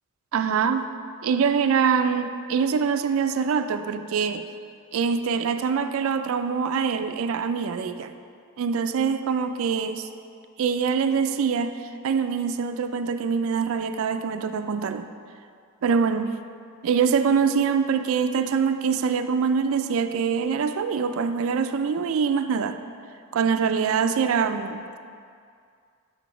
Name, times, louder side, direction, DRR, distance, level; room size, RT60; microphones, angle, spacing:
voice 1, 0.3-0.9 1.2-4.5 4.9-8.1 8.6-10.1 10.6-11.8 12.0-15.1 15.8-16.4 16.8-22.8 23.3-25.0, right 6 dB, 65° right, 9 dB, 0.3 m, -24 dB
5.8 x 5.6 x 4.9 m, 2.3 s
head